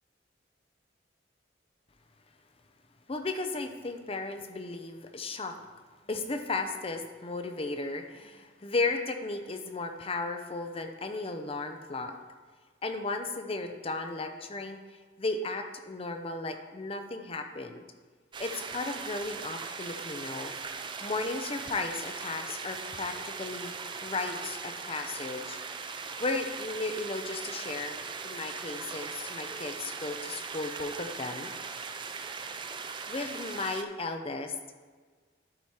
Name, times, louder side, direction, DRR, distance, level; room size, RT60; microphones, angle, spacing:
voice 1, 3.1-5.6 6.1-12.1 12.8-14.8 15.2-17.8 18.4-20.5 21.0-23.7 24.0-25.6 26.2-28.0 28.2-31.5 32.7-34.5, left 3 dB, 30° left, 6 dB, 0.6 m, -35 dB
sound 1, 18.3-33.8, right 5 dB, 25° right, 0.4 m, -39 dB
11.5 x 4.7 x 4.3 m, 1.5 s
head